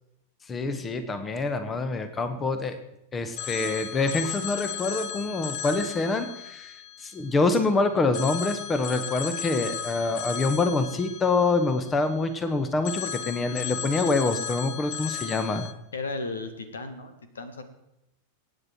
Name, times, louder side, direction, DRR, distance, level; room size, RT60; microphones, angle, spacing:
voice 1, 0.5-2.8 3.1-6.7 7.0-15.7, left 3 dB, 20° left, 10 dB, 1.5 m, -26 dB
Telephone, 3.4-7.6 8.1-12.4 12.8-15.7, left 8 dB, 45° left, 1.2 m, -36 dB
voice 2, 15.9-17.6, left 3 dB, 70° left, 10 dB, 1.7 m, -35 dB
24.5 x 9.5 x 4.5 m, 0.86 s
figure-of-eight pair, 90°, 0 cm